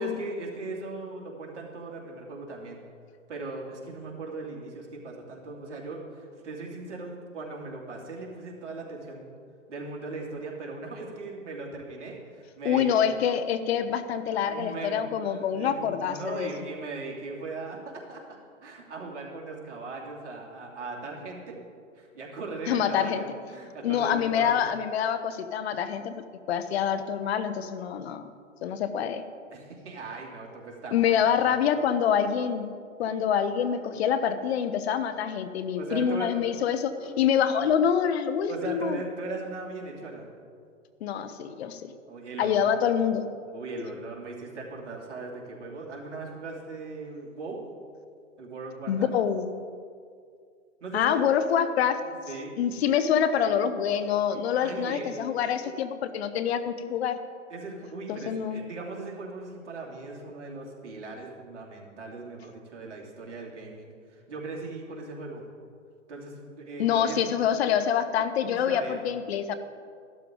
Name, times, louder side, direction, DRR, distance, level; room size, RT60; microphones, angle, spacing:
voice 1, 0.0-2.8 3.3-9.3 9.7-13.1 14.1-18.2 18.6-21.6 21.9-24.5 29.5-31.3 35.8-36.6 37.0-37.1 38.5-40.3 42.1-42.7 43.5-47.6 48.4-49.1 50.8-51.3 52.0-52.5 54.5-55.2 55.6-55.7 57.5-65.4 66.1-67.2 68.5-69.0, right 3 dB, 65° right, -2 dB, 3.0 m, -39 dB
voice 2, 12.6-16.5 22.7-23.2 23.8-28.3 28.6-29.2 30.9-32.7 33.0-39.0 41.0-41.9 42.4-43.2 48.9-49.5 50.9-52.0 52.6-57.2 58.1-58.6 66.8-69.6, left 8 dB, 55° left, 11 dB, 1.0 m, -26 dB
14.0 x 12.5 x 3.8 m, 2.2 s
hypercardioid pair, 130°, 39 cm